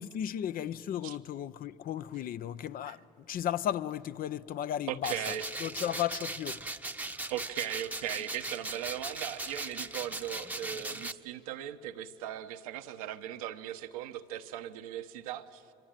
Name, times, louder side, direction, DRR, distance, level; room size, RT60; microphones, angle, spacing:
voice 1, 0.0-3.0 3.3-5.2 5.6-6.6, left 11 dB, 50° left, 0.7 m, -34 dB
voice 2, 4.9-5.4 7.3-15.7, right 12 dB, 85° right, 1.0 m, -38 dB
sound 1, 5.0-11.1, right 2 dB, 10° right, 0.9 m, -39 dB
25.0 x 24.0 x 9.0 m
supercardioid pair, 75°, 18 cm